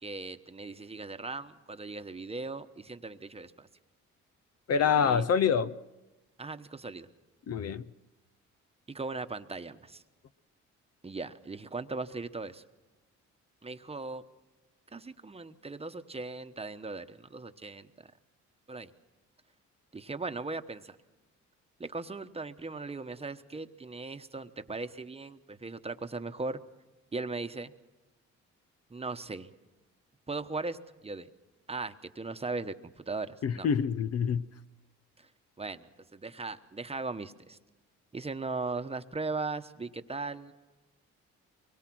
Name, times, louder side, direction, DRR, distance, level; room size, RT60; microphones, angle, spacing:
voice 1, 0.0-3.7 4.8-5.3 6.4-7.1 8.9-10.0 11.0-12.6 13.6-14.2 14.9-18.1 18.7-18.9 19.9-21.0 21.8-26.6 27.1-27.7 28.9-29.5 30.3-31.3 31.7-33.7 35.2-35.3 35.6-37.6 38.1-40.5, right 3 dB, 20° right, 1.1 m, -38 dB
voice 2, 4.7-5.8 7.5-7.9 33.4-34.4, left 7 dB, 55° left, 0.7 m, -26 dB
24.0 x 21.5 x 6.2 m
cardioid pair, 90°, 30 cm